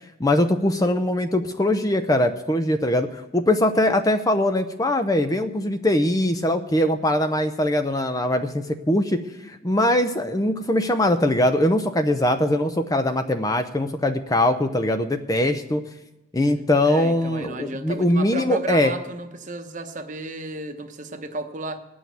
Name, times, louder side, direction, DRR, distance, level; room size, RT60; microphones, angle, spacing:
voice 1, 0.2-15.8 16.3-18.9, left 1 dB, 15° left, 8 dB, 0.6 m, -22 dB
voice 2, 16.8-21.8, right 2 dB, 40° right, 7 dB, 1.0 m, -33 dB
18.5 x 6.3 x 9.4 m, 1.0 s
head